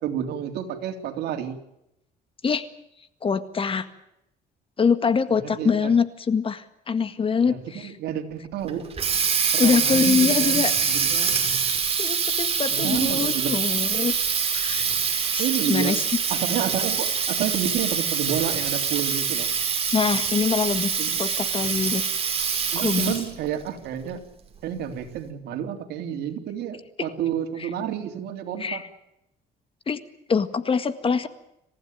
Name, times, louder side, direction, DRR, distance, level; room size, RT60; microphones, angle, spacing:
voice 1, 0.0-1.6 5.3-5.9 7.4-8.9 9.5-11.4 12.7-13.6 15.4-16.0 16.3-19.5 21.0-21.2 22.7-24.2 24.6-28.8, right 9 dB, 75° right, 5 dB, 3.4 m, -30 dB
voice 2, 3.2-3.9 4.8-7.9 9.6-10.7 12.0-14.1 14.5-14.9 15.3-16.0 19.9-22.0 22.8-23.1 27.6-27.7 28.6-28.8 29.9-30.0 30.3-31.3, left 5 dB, 30° left, 11 dB, 1.8 m, -24 dB
Water tap faucet, 8.7-23.4, right 6 dB, 35° right, 5.6 m, -25 dB
28.0 x 15.5 x 9.1 m, 0.83 s
cardioid pair, 110°, 17 cm